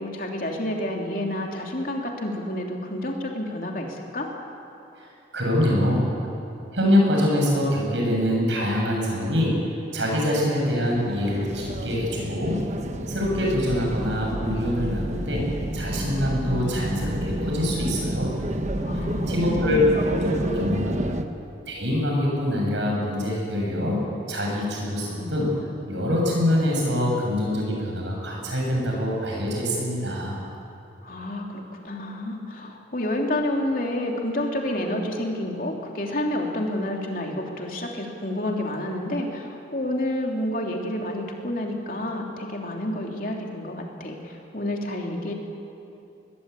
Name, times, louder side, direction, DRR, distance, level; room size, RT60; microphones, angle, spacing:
voice 1, 0.0-4.3 18.8-19.9 20.2-21.0 31.0-45.3, left 1 dB, 50° left, 0 dB, 3.2 m, -29 dB
voice 2, 5.3-6.1 6.7-9.6 9.9-12.6 13.1-15.5 15.7-18.3 18.9-19.8 20.4-21.2 21.7-24.0 24.3-25.5 25.9-30.4, left 1 dB, 80° right, -2 dB, 7.7 m, -24 dB
sound 1, 10.7-21.2, right 1 dB, 40° right, 1.1 m, -30 dB
21.5 x 21.0 x 8.5 m, 2.7 s
head